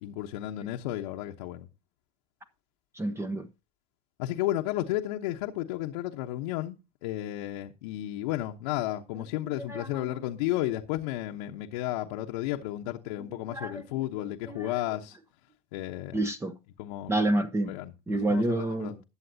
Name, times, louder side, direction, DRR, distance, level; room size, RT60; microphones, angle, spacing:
voice 1, 0.0-1.7 4.2-15.2 15.7-16.2 16.8-17.1 17.7-19.0, left 14 dB, 65° left, 1.1 m, -33 dB
voice 2, 2.9-3.5 9.6-10.1 13.5-13.8 14.2-14.7 16.1-16.6 17.1-17.8 18.1-19.0, right 1 dB, 15° right, 1.0 m, -29 dB
19.5 x 7.6 x 2.8 m
hypercardioid pair, 75°, 20 cm